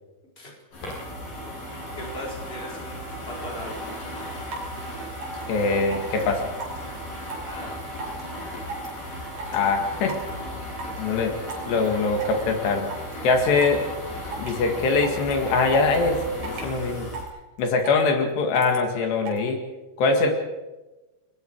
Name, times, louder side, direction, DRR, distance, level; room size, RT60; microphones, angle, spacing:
sound 1, 0.7-17.2, equal, 50° left, 7.8 m, -36 dB
voice 1, 1.9-3.8 7.4-7.7 11.2-11.3, left 1 dB, 15° left, -1 dB, 4.8 m, -38 dB
sound 2, 4.0-4.1 4.5-4.7 5.2-5.4 5.9-6.2 6.6-6.9 7.3-7.5 8.0-8.2 8.6-9.0 9.4-9.6 10.1-10.3 10.8-11.0 11.5-11.9 12.2-12.4 12.8-13.1 13.6-13.8 14.3-14.7 15.0-15.3 15.7-16.0 16.4-16.7 17.1-17.3 17.6-18.1 18.5-18.8 19.3-19.4, right 4 dB, 65° right, 5.7 m, -35 dB
voice 2, 5.5-6.4 9.5-10.2 11.0-11.3 11.7-12.9 13.2-13.8 14.4-17.1 17.6-19.6 20.0-20.3, left 4 dB, 80° left, 4 dB, 4.3 m, -22 dB
28.5 x 21.5 x 4.8 m, 1.1 s
omnidirectional pair, 4.8 m